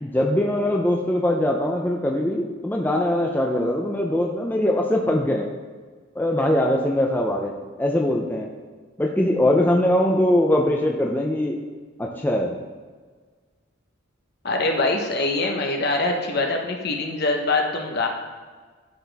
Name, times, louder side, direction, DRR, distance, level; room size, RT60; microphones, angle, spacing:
voice 1, 0.0-5.5 6.2-7.5 7.8-8.5 9.0-11.5 12.0-12.6, left 1 dB, 10° left, 0 dB, 0.5 m, -22 dB
voice 2, 14.4-18.1, left 2 dB, 50° left, 2 dB, 1.0 m, -23 dB
11.5 x 4.3 x 3.4 m, 1.5 s
head